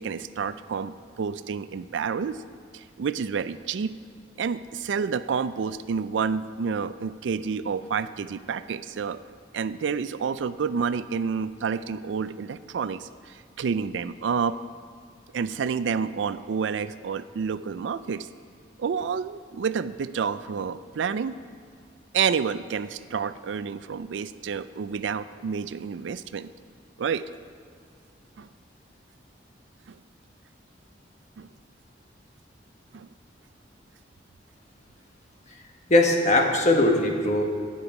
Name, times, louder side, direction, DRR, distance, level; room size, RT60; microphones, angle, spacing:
voice 1, 0.0-2.4 2.7-3.9 4.4-9.2 9.5-14.6 15.3-18.3 18.8-21.4 22.1-26.5 27.0-27.3 28.4-28.5 29.9-30.0 31.4-31.5 32.9-33.1, right 6 dB, 80° right, 14 dB, 0.4 m, -29 dB
voice 2, 35.9-37.4, left 2 dB, 40° left, 2 dB, 1.3 m, -20 dB
18.0 x 6.9 x 4.8 m, 2.2 s
head